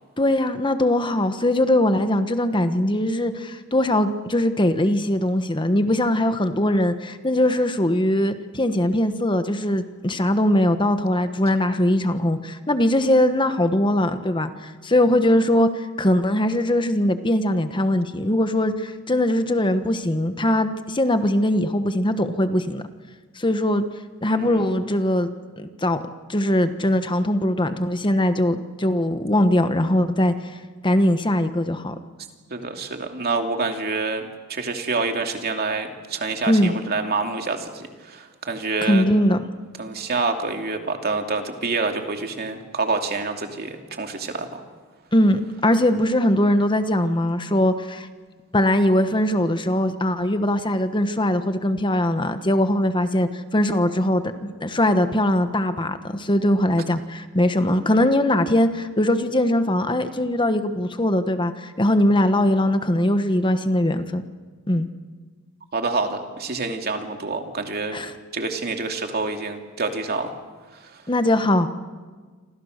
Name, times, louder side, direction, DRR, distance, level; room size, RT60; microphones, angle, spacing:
voice 1, 0.2-14.5 14.8-22.8 23.4-23.8 24.2-26.0 26.3-30.3 30.8-31.9 36.5-36.7 38.8-39.4 45.1-48.1 48.5-64.2 64.7-64.9 67.9-68.1 71.1-71.7, left 1 dB, 25° left, 9 dB, 1.3 m, -21 dB
voice 2, 24.3-24.7 32.5-39.0 39.8-44.6 65.7-68.0 68.3-70.3 70.7-71.0, right 3 dB, 50° right, 4 dB, 2.7 m, -27 dB
28.5 x 26.5 x 6.7 m, 1.4 s
head